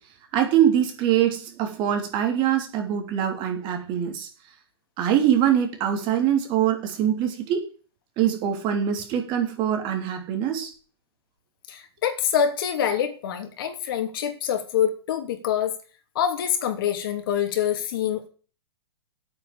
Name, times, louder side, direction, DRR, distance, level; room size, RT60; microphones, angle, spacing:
voice 1, 0.3-4.3 5.0-7.6 8.2-10.7, right 10 dB, 35° right, 4 dB, 3.5 m, -23 dB
voice 2, 11.7-15.7 16.1-18.3, left 9 dB, 55° left, 6 dB, 2.9 m, -25 dB
9.0 x 8.6 x 8.8 m, 0.39 s
hypercardioid pair, 125°, 14 cm